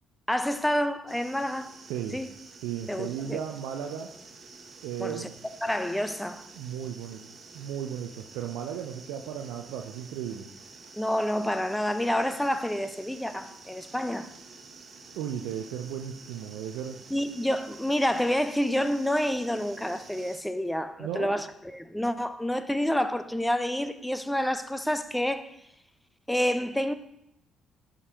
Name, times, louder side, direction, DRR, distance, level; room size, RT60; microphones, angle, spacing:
voice 1, 0.3-1.7 2.1-2.3 2.9-3.4 5.0-5.3 5.6-6.4 10.9-14.3 17.1-21.5 21.7-25.5 26.3-26.9, equal, 5° left, 0.6 m, -28 dB
sound 1, 1.1-20.4, right 4 dB, 40° right, 1.0 m, -49 dB
voice 2, 2.6-4.1 4.8-5.3 6.5-7.2 7.5-10.5 15.2-17.0 21.0-21.4, right 9 dB, 70° right, 0.4 m, -35 dB
11.0 x 5.1 x 2.9 m
figure-of-eight pair, 45°, 0 cm